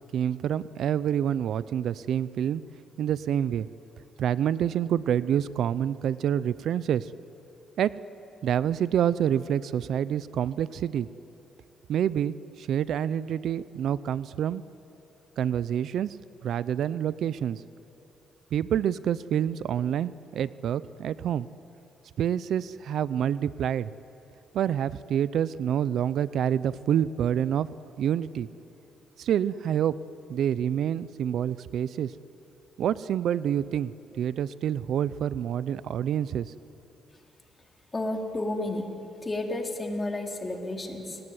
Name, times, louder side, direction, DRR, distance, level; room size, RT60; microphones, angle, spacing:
voice 1, 0.1-2.6 3.0-3.7 4.2-7.1 7.8-7.9 8.4-11.1 11.9-14.6 15.4-16.2 16.4-17.6 18.5-21.5 22.2-23.9 24.5-27.7 28.0-28.5 29.2-29.9 30.3-32.1 32.8-36.5, right 9 dB, 70° right, 17 dB, 0.6 m, -27 dB
voice 2, 37.9-38.9 39.2-41.2, left 2 dB, 25° left, 2 dB, 3.8 m, -31 dB
29.5 x 19.0 x 9.9 m, 3.0 s
cardioid pair, 90°, 0 cm